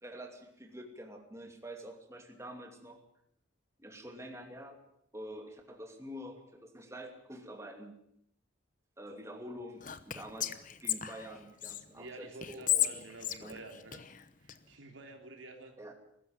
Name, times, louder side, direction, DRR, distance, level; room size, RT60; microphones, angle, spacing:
voice 1, 0.0-3.0 3.8-4.8 5.1-7.9 9.0-10.5 10.8-12.9 13.4-13.6 15.8-15.9, equal, 15° right, 4 dB, 2.6 m, -47 dB
Whispering, 9.8-11.8 12.4-14.6, left 11 dB, 40° left, 1.0 m, -34 dB
voice 2, 11.9-14.0 14.4-15.8, right 2 dB, 80° right, 3 dB, 3.3 m, -49 dB
21.5 x 13.5 x 9.0 m, 0.73 s
head